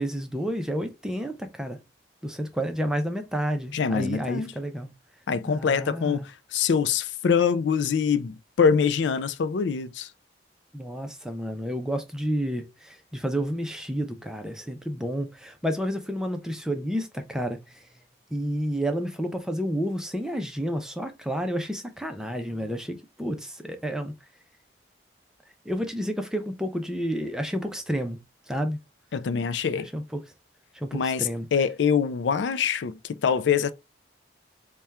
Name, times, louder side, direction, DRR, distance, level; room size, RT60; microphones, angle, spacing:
voice 1, 0.0-1.8 2.2-4.9 5.5-6.3 10.7-17.9 18.3-24.1 25.6-28.2 28.5-28.8 29.8-30.2 30.7-31.5, equal, 5° right, 0.5 m, -30 dB
voice 2, 3.7-4.5 5.3-10.1 29.1-29.9 30.9-33.7, left 6 dB, 80° left, 0.4 m, -24 dB
4.2 x 2.2 x 3.4 m
head